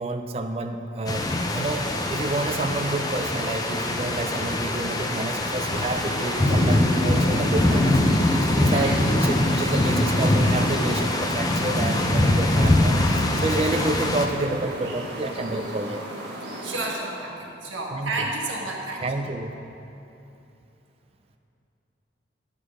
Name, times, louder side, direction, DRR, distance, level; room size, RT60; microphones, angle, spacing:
voice 1, 0.0-16.0 17.9-18.2 19.0-19.5, right 2 dB, 30° right, 7 dB, 0.4 m, -29 dB
sound 1, 1.1-14.3, left 1 dB, 20° left, 0.5 m, -23 dB
sound 2, 5.7-16.9, right 1 dB, 60° right, 1.5 m, -35 dB
voice 2, 16.6-19.1, right 2 dB, 85° right, -1 dB, 1.4 m, -31 dB
9.9 x 6.6 x 4.9 m, 2.8 s
head